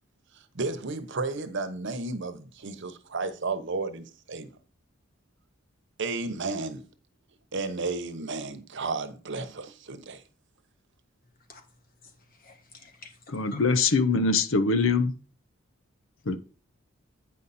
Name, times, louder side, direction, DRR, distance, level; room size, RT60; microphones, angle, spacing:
voice 1, 0.5-4.6 6.0-6.8 7.5-10.2, right 3 dB, 60° right, 0.9 m, -33 dB
voice 2, 11.2-13.8 16.2-16.3, left 3 dB, 45° left, 1.7 m, -52 dB
voice 3, 13.3-15.1 16.3-16.4, left 4 dB, 65° left, 0.7 m, -23 dB
9.1 x 5.4 x 4.2 m
head